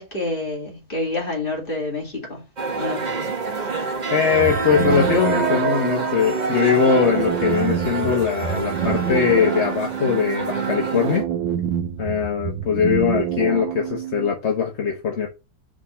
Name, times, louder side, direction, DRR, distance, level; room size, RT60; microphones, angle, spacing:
voice 1, 0.0-2.4 2.8-3.2, left 2 dB, 25° left, 2.7 m, -28 dB
sound 1, 2.6-11.2, right 4 dB, 35° right, 0.8 m, -26 dB
voice 2, 4.1-11.2 12.0-15.3, left 7 dB, 45° left, 1.1 m, -21 dB
sound 2, 4.3-14.3, right 10 dB, 85° right, 1.4 m, -27 dB
5.1 x 3.6 x 5.6 m
omnidirectional pair, 2.1 m